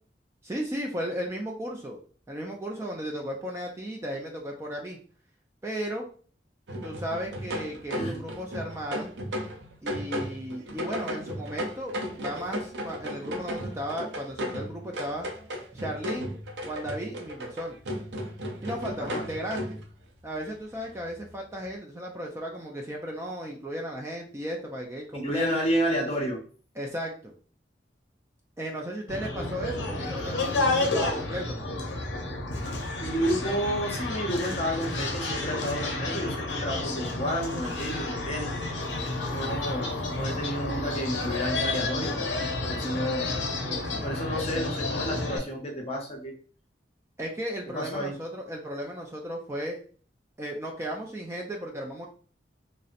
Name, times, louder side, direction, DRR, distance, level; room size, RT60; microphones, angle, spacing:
voice 1, 0.4-2.0 2.3-5.0 5.6-6.1 6.8-9.1 9.8-15.3 15.7-16.3 16.7-17.8 18.6-19.8 20.2-25.5 26.8-27.3 28.6-31.7 43.6-44.1 47.2-49.8 50.4-52.1, equal, 15° right, 0 dB, 0.3 m, -35 dB
sound 1, 6.7-19.9 20.3-20.4 20.8-21.2 21.7-21.8, equal, 70° right, 0.5 m, -35 dB
voice 2, 7.9-8.2 19.0-19.2 25.1-26.4 33.0-38.5 39.3-42.3 42.6-43.3 44.0-46.3 47.7-48.1, equal, 35° left, 0 dB, 0.7 m, -31 dB
sound 2, 29.1-45.4, left 2 dB, 80° left, 0.5 m, -30 dB
2.7 x 2.0 x 2.4 m, 0.42 s
head